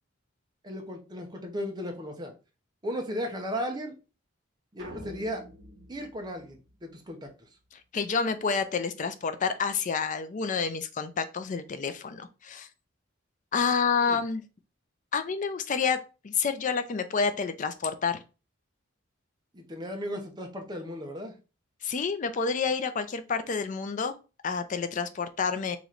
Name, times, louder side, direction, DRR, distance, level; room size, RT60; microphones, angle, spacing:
voice 1, 0.6-2.3 2.8-3.9 4.7-5.4 5.9-7.3 14.0-14.2 19.5-21.3, equal, 20° right, 3 dB, 0.7 m, -35 dB
sound 1, 4.8-7.3, right 1 dB, 60° right, 1.3 m, -47 dB
voice 2, 7.9-12.7 13.5-14.4 15.1-18.2 21.8-24.2 24.4-25.8, left 5 dB, 40° left, 10 dB, 0.4 m, -29 dB
3.1 x 2.9 x 3.8 m, 0.32 s
head